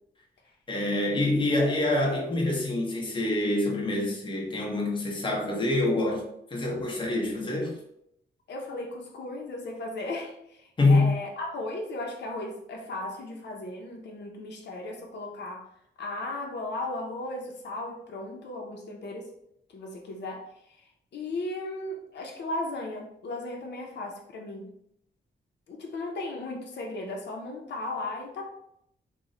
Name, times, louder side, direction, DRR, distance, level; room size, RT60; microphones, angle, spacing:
voice 1, 0.7-6.2 6.5-7.7 10.8-11.2, left 2 dB, 30° left, 0.7 m, -26 dB
voice 2, 8.5-15.6 16.0-19.3 19.7-20.4 21.1-24.7 25.7-28.5, left 2 dB, 75° left, 0.6 m, -36 dB
3.0 x 2.0 x 3.6 m
wide cardioid pair, 135°, 18 cm